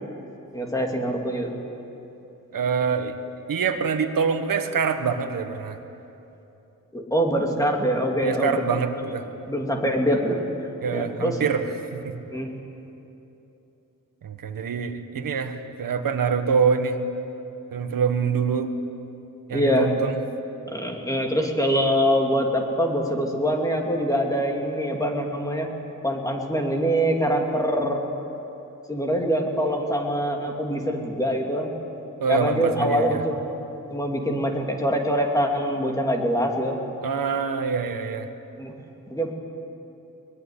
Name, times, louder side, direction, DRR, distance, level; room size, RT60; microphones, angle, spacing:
voice 1, 0.5-1.6 6.9-8.6 9.0-9.2 9.5-10.4 10.9-11.6 12.3-12.5 19.5-19.9 20.7-25.7 26.0-28.0 28.9-31.7 32.3-33.4 33.9-36.8 38.6-38.8 39.1-39.3, equal, 10° left, 1 dB, 2.7 m, -24 dB
voice 2, 2.5-3.1 3.5-5.8 8.2-9.3 10.8-11.6 11.9-12.2 14.2-17.0 17.7-18.7 19.5-20.2 32.2-33.2 37.0-38.3, right 6 dB, 90° right, 7 dB, 1.6 m, -25 dB
22.5 x 21.5 x 10.0 m, 3.0 s
wide cardioid pair, 170°, 33 cm